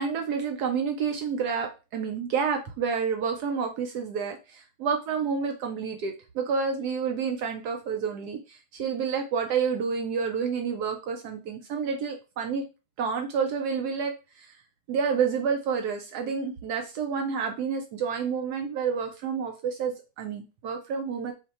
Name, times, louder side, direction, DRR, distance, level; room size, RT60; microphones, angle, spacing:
voice 1, 0.0-12.6 13.0-14.1 14.4-14.5 14.9-21.3, right 6 dB, 85° right, 4 dB, 0.8 m, -29 dB
4.7 x 2.2 x 4.1 m, 0.29 s
omnidirectional pair, 2.4 m